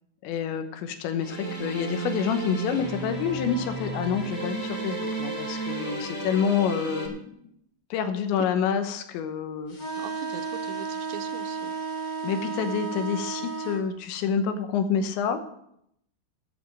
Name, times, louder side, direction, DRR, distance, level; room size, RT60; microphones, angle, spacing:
voice 1, 0.2-7.4 7.9-9.8 12.2-15.4, left 7 dB, 80° left, 8 dB, 3.2 m, -28 dB
sound 1, 1.2-7.1, right 2 dB, 20° left, 0.5 m, -33 dB
sound 2, 9.7-13.8, right 5 dB, 45° left, 1.4 m, -33 dB
voice 2, 9.9-11.8 13.4-13.6, right 9 dB, 85° right, 7 dB, 3.0 m, -42 dB
11.0 x 7.6 x 7.5 m, 0.75 s
omnidirectional pair, 5.3 m